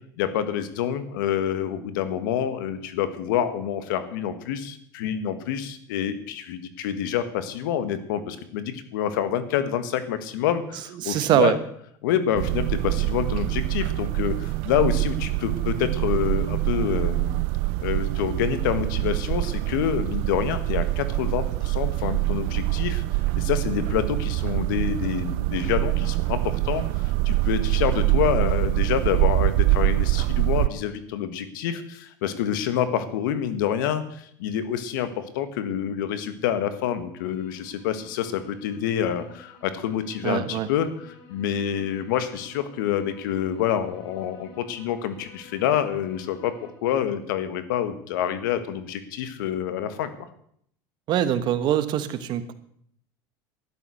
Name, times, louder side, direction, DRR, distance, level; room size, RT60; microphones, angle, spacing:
voice 1, 0.2-11.6 12.0-17.4 17.8-23.0 23.3-46.5 46.8-50.3, left 9 dB, 85° left, 11 dB, 1.7 m, -27 dB
voice 2, 11.0-11.6 40.2-40.7 51.1-52.5, right 11 dB, 45° right, 11 dB, 1.3 m, -23 dB
sound 1, 12.3-30.7, right 19 dB, 65° right, 0.4 m, -25 dB
sound 2, 37.2-46.7, left 3 dB, 60° left, 4.0 m, -51 dB
12.5 x 11.5 x 6.5 m, 0.67 s
supercardioid pair, 135°, 10 cm